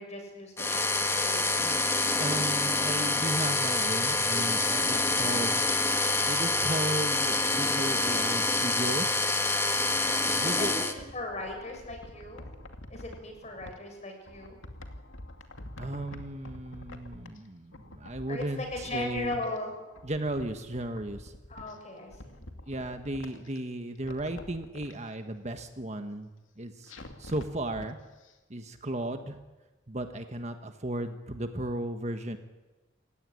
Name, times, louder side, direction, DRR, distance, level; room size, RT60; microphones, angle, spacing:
voice 1, 0.0-1.8 4.9-5.3 10.4-12.5 12.9-14.6 18.3-19.7 21.5-22.5, left 2 dB, 35° left, 3 dB, 6.6 m, -38 dB
sound 1, 0.6-10.9, left 3 dB, 15° left, 1.5 m, -27 dB
voice 2, 2.1-5.5 6.2-9.1 10.2-11.0 15.8-19.4 20.0-21.3 22.7-26.3 26.6-26.9 27.2-28.0 28.5-29.4 29.9-32.4, right 1 dB, 35° right, 7 dB, 1.4 m, -35 dB
sound 2, 11.0-13.8 14.3-17.5 17.7-19.6 19.9-21.8 22.1-23.6 24.0-24.9 26.9-27.9 28.2-28.3, left 1 dB, 80° left, 2.5 m, -46 dB
28.0 x 16.0 x 10.0 m, 1.1 s
head